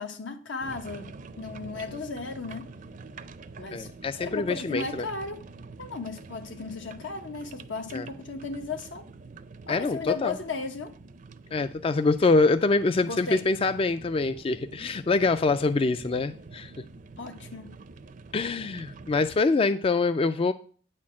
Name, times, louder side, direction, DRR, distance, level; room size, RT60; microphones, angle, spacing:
voice 1, 0.0-2.7 3.6-3.9 4.2-5.4 5.8-9.1 9.7-10.9 13.0-13.4 17.2-17.8, left 4 dB, 80° left, 1.2 m, -35 dB
sound 1, 0.6-19.4, right 3 dB, 45° right, 0.5 m, -46 dB
voice 2, 3.7-5.0 7.9-8.1 9.7-10.4 11.5-16.7 18.3-20.5, left 3 dB, 30° left, 0.3 m, -25 dB
9.4 x 4.4 x 7.3 m
head